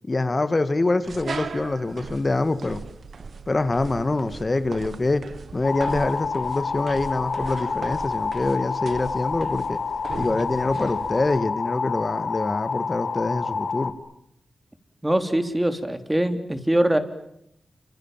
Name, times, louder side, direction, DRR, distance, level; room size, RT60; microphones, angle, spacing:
voice 1, 0.0-2.8 3.5-5.2 5.5-9.8 10.2-13.9, left 2 dB, 35° left, 12 dB, 1.9 m, -25 dB
sound 1, 1.0-11.4, right 5 dB, 65° right, 1.4 m, -38 dB
sound 2, 5.6-13.9, left 5 dB, 60° left, 3.0 m, -28 dB
voice 2, 15.0-17.0, right 1 dB, 10° right, 9 dB, 3.4 m, -22 dB
29.5 x 26.5 x 7.5 m, 0.76 s
cardioid pair, 80°, 0 cm